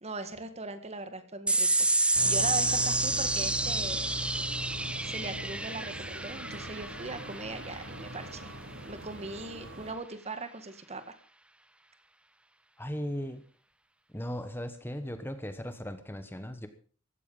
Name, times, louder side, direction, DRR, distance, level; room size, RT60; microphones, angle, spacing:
voice 1, 0.0-1.7 2.2-4.1 5.0-8.5 8.9-11.1, right 3 dB, 30° right, 10 dB, 1.8 m, -39 dB
sound 1, 1.5-8.3, right 2 dB, 5° right, 0.7 m, -29 dB
sound 2, 2.1-9.9, right 1 dB, 70° right, 3.7 m, -41 dB
voice 2, 12.8-13.4 14.1-16.7, equal, 10° left, 10 dB, 1.2 m, -37 dB
15.5 x 14.0 x 5.5 m, 0.41 s
head